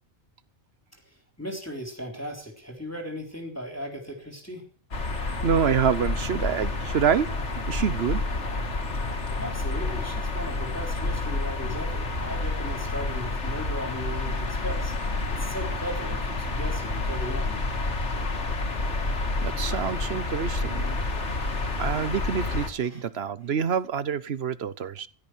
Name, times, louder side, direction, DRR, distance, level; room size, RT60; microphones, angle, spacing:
voice 1, 1.4-4.6 9.4-17.7 22.8-23.0, equal, 10° left, 3.6 m, -37 dB
sound 1, 4.9-22.7, left 2 dB, 70° left, 2.3 m, -29 dB
voice 2, 5.1-7.4 7.7-8.2 19.4-21.0 21.8-25.1, right 7 dB, 60° right, 1.1 m, -27 dB
16.5 x 12.0 x 6.3 m
omnidirectional pair, 1.2 m